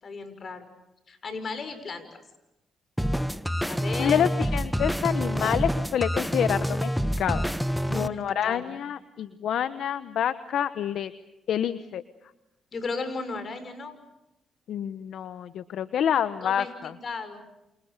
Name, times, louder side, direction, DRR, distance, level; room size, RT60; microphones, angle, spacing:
voice 1, 0.0-0.7 1.1-2.1 3.6-4.3 7.9-8.8 12.7-14.0 16.4-17.5, left 4 dB, 50° left, 11 dB, 6.1 m, -35 dB
sound 1, 3.0-8.1, equal, ahead, 1.2 m, -27 dB
voice 2, 4.0-7.5 7.9-11.1 11.5-12.0 14.7-16.9, left 9 dB, 75° left, 12 dB, 1.0 m, -27 dB
30.0 x 28.0 x 6.8 m, 0.93 s
supercardioid pair, 65°, 0 cm